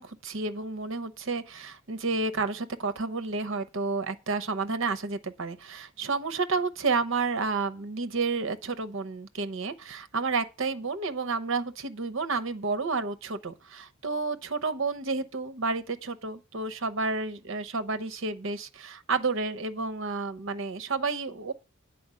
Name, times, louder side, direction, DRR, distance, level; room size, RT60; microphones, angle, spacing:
voice 1, 0.0-21.5, right 4 dB, 65° right, 0.9 m, -31 dB
9.4 x 4.4 x 7.5 m
head